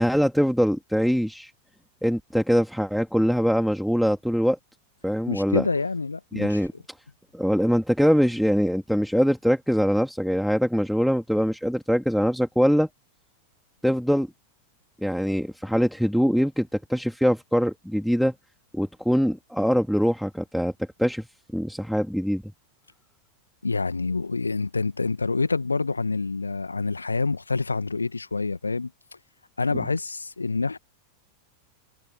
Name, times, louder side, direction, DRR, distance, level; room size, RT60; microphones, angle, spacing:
voice 1, 0.0-1.5 2.0-4.6 5.0-5.6 6.3-6.7 7.3-12.9 13.8-14.3 15.0-18.3 18.7-20.7 21.0-21.3 21.5-22.4, equal, ahead, 3.1 m, -23 dB
voice 2, 5.3-6.6 23.6-28.9 29.6-30.8, left 3 dB, 80° left, 1.9 m, -27 dB
figure-of-eight pair, 90°, 0 cm